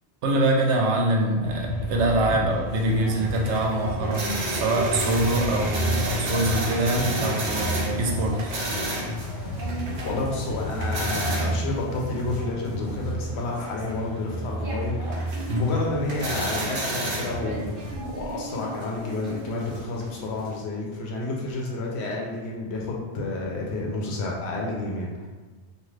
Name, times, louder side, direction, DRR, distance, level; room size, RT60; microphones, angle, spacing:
voice 1, 0.2-8.5 15.5-15.7, right 2 dB, 80° right, 0 dB, 0.9 m, -24 dB
sound 1, 1.4-18.0, equal, 50° left, 0.7 m, -32 dB
sound 2, 2.7-20.6, right 1 dB, 55° right, 0.7 m, -33 dB
voice 2, 10.0-17.7 18.0-25.3, left 2 dB, 75° left, -2 dB, 0.9 m, -30 dB
2.5 x 2.4 x 3.1 m, 1.3 s
omnidirectional pair, 1.2 m